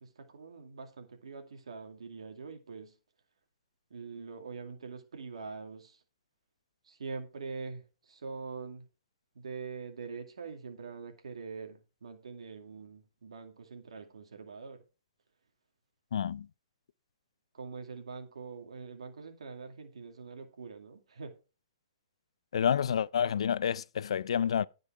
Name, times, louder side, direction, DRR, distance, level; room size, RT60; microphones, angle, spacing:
voice 1, 0.0-3.0 3.9-6.0 6.8-8.9 9.3-14.8 17.5-21.3, right 5 dB, 90° right, 2.3 m, -44 dB
voice 2, 16.1-16.5 22.5-24.7, left 8 dB, 75° left, 0.4 m, -29 dB
15.0 x 5.4 x 4.6 m
hypercardioid pair, 150°, 3 cm